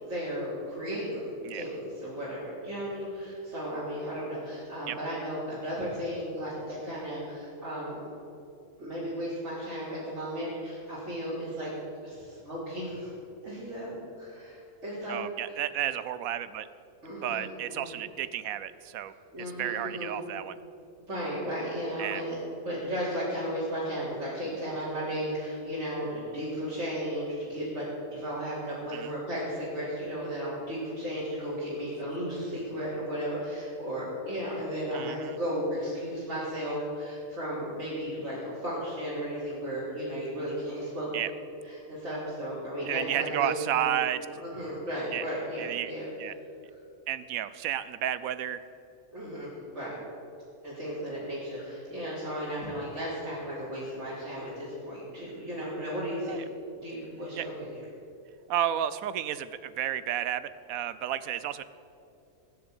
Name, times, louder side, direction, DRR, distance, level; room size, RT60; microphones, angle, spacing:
voice 1, 0.0-8.1 8.8-11.7 12.0-13.1 13.4-15.6 17.0-17.9 19.1-20.1 21.0-41.1 41.6-43.9 44.3-46.1 49.1-50.0 50.6-56.4 56.8-57.7, equal, 55° right, -11 dB, 4.0 m, -35 dB
voice 2, 15.1-16.7 17.2-19.1 19.6-20.6 22.0-22.2 28.9-29.1 34.9-35.4 41.1-41.3 42.9-44.3 45.1-45.2 45.6-45.9 46.2-46.3 47.1-48.6 56.3-56.4 57.4-57.5 58.5-61.6, right 11 dB, 85° right, 15 dB, 1.1 m, -32 dB
18.0 x 6.8 x 8.9 m, 2.8 s
omnidirectional pair, 1.4 m